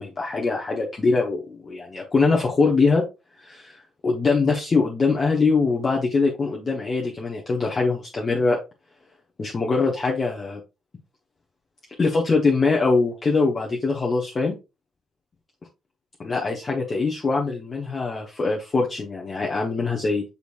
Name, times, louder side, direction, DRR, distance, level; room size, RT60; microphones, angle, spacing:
voice 1, 0.0-3.0 3.4-3.8 4.0-8.6 9.4-10.6 12.0-14.5 16.2-20.2, left 4 dB, 35° left, -2 dB, 0.9 m, -23 dB
6.7 x 3.1 x 2.5 m, 0.26 s
figure-of-eight pair, 40°, 0 cm